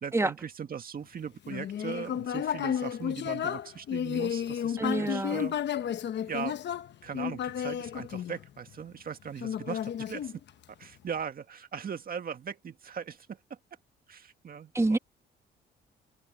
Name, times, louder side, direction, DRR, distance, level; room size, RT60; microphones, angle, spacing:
voice 1, 0.0-5.6 6.3-6.6 7.0-10.3 10.8-13.4 14.1-15.0, right 7 dB, 45° right, 1.9 m, -39 dB
Human voice, 1.5-8.8 9.4-10.8, left 9 dB, 60° left, 1.0 m, -32 dB
voice 2, 4.8-5.4 14.7-15.0, right 2 dB, 15° right, 1.2 m, -27 dB
cardioid pair, 90°, 20 cm